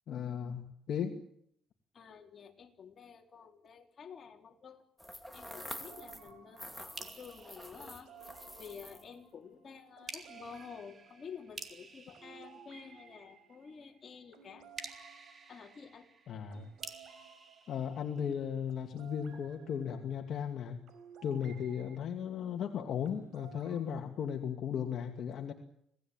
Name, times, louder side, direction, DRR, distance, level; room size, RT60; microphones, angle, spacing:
voice 1, 0.1-1.1 16.3-16.7 17.7-20.8 21.2-25.5, left 8 dB, 55° left, 4 dB, 2.3 m, -36 dB
voice 2, 1.9-4.8 5.3-8.1 8.6-14.7 15.5-16.1, left 6 dB, 35° left, 2 dB, 3.9 m, -50 dB
sound 1, 5.0-6.3 6.6-9.1, equal, ahead, 2.5 m, -47 dB
sound 2, 5.6-22.0 23.1-23.8, right 7 dB, 70° right, 5.7 m, -58 dB
sound 3, 7.0-8.7 10.1-13.4 14.8-18.7, right 4 dB, 35° right, 3.5 m, -51 dB
27.0 x 18.5 x 9.0 m, 0.72 s
cardioid pair, 125°, 0 cm